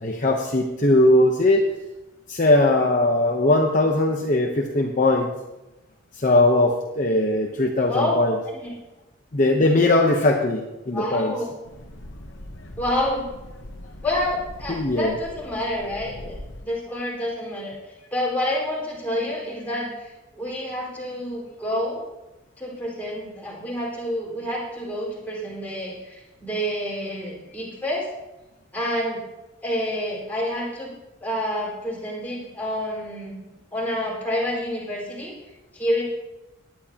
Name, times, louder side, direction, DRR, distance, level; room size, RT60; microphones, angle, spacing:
voice 1, 0.0-1.6 2.3-5.3 6.2-8.3 9.3-11.3 14.7-15.2, left 2 dB, 40° left, 1 dB, 0.9 m, -20 dB
voice 2, 10.9-11.5 12.8-13.3 14.0-17.7 18.1-22.0 22.6-28.0 28.7-29.2 29.6-30.9 31.2-33.4 33.7-35.3 35.7-36.0, left 1 dB, 10° left, -5 dB, 4.7 m, -28 dB
sound 1, 11.6-16.6, left 1 dB, 65° left, 1.1 m, -41 dB
18.5 x 10.5 x 2.9 m, 1.0 s
head